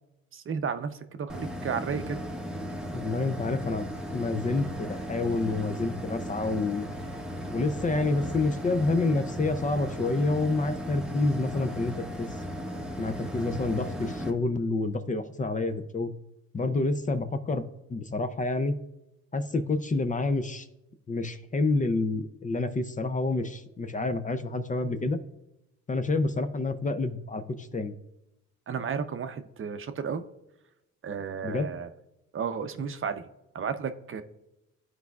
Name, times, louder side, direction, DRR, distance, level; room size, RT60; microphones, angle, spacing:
voice 1, 0.3-2.2 28.7-30.2 31.0-31.9 32.3-33.2 33.5-34.2, right 6 dB, 45° right, 9 dB, 0.6 m, -33 dB
sound 1, 1.3-14.3, equal, 5° right, 0.9 m, -36 dB
voice 2, 2.9-3.9 4.1-6.9 7.5-12.3 13.0-16.1 16.5-18.7 19.3-20.7 21.1-25.2 25.9-27.9 31.4-31.7, left 3 dB, 25° left, 10 dB, 0.5 m, -28 dB
13.0 x 4.7 x 2.3 m, 0.92 s
cardioid pair, 90°, 30 cm